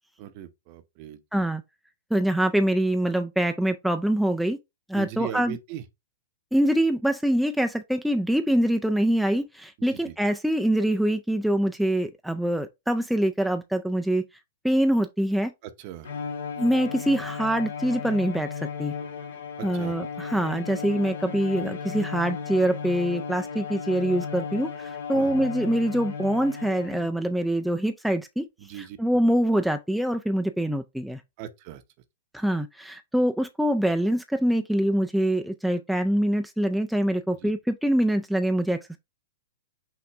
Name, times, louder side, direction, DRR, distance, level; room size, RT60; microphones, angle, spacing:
voice 1, 0.2-1.5 4.9-5.8 9.8-10.1 15.6-16.1 19.6-19.9 20.3-20.4 25.1-25.5 28.6-29.0 31.4-31.8 37.3-37.5, right 11 dB, 45° right, 0.7 m, -39 dB
voice 2, 1.3-1.6 2.1-4.6 4.9-5.6 6.5-14.2 14.6-15.5 16.6-18.9 19.6-28.5 28.8-31.2 32.3-39.0, right 1 dB, ahead, 0.3 m, -24 dB
Bowed string instrument, 16.0-27.3, left 5 dB, 80° left, 1.7 m, -35 dB
5.8 x 2.6 x 3.3 m
hypercardioid pair, 130°, 0 cm